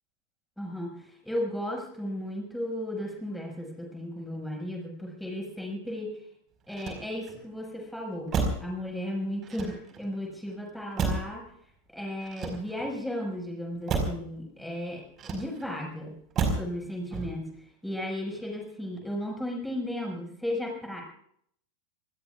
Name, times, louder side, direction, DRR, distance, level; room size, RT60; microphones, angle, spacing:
voice 1, 0.6-6.2 6.7-11.4 11.9-16.2 16.5-17.5 17.8-21.0, left 1 dB, ahead, 0 dB, 5.7 m, -35 dB
Motor vehicle (road), 6.6-7.5 8.3-8.8 9.4-10.1 11.0-11.4 12.2-13.0 13.9-14.3 15.2-15.8 16.4-16.8 17.1-17.6, right 4 dB, 30° right, 4.7 m, -31 dB
27.0 x 20.0 x 2.4 m, 0.66 s
figure-of-eight pair, 90°, 0 cm